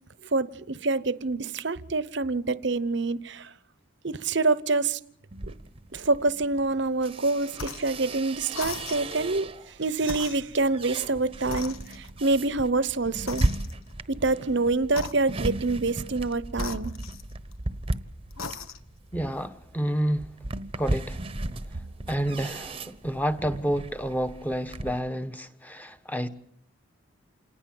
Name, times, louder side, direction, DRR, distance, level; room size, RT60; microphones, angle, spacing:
voice 1, 0.3-3.5 4.0-5.0 5.5-5.6 5.9-9.5 9.8-13.5 14.1-16.9, right 3 dB, 55° right, 0.9 m, -26 dB
sound 1, 5.3-9.8 10.3-25.0, right 1 dB, 25° right, 1.0 m, -36 dB
sound 2, 7.5-8.0 8.5-9.3 10.0-11.1 11.5-12.3 13.3-14.0 14.9-15.6 16.5-17.7 18.3-19.0, left 4 dB, 90° left, 1.3 m, -39 dB
voice 2, 19.1-20.3 20.8-21.2 22.1-26.3, equal, 10° left, 1.2 m, -29 dB
28.0 x 19.5 x 7.8 m
head